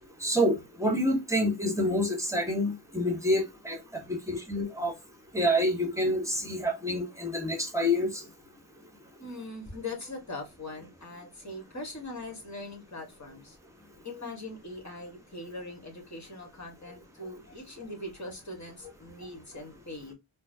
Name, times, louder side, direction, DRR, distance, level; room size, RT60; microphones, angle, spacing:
voice 1, 0.2-3.8 4.1-4.9 5.3-8.2, equal, 5° right, 1.1 m, -27 dB
voice 2, 9.2-13.6 14.0-20.1, left 2 dB, 35° left, 1.5 m, -41 dB
4.3 x 2.0 x 2.7 m
wide cardioid pair, 65°, 50 cm